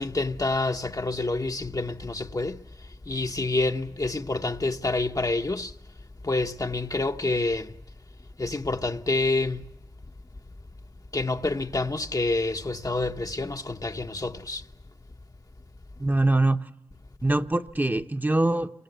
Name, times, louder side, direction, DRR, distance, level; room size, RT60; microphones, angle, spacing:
voice 1, 0.0-2.6 3.1-5.8 6.2-7.8 8.4-9.7 11.1-14.7, left 2 dB, 45° left, 1.2 m, -28 dB
voice 2, 16.0-16.7 17.2-18.7, right 2 dB, 20° right, 1.0 m, -23 dB
29.5 x 23.5 x 8.1 m
cardioid pair, 50°, 9 cm